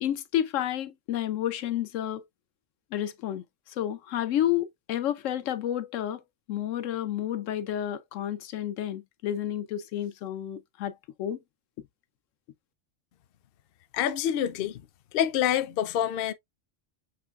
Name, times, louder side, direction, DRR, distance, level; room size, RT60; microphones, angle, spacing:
voice 1, 0.0-2.2 2.9-6.2 6.5-11.4, left 11 dB, 90° left, 1.0 m, -30 dB
voice 2, 13.9-14.8 15.1-16.3, left 10 dB, 60° left, 0.7 m, -26 dB
6.4 x 3.1 x 2.3 m
omnidirectional pair, 1.3 m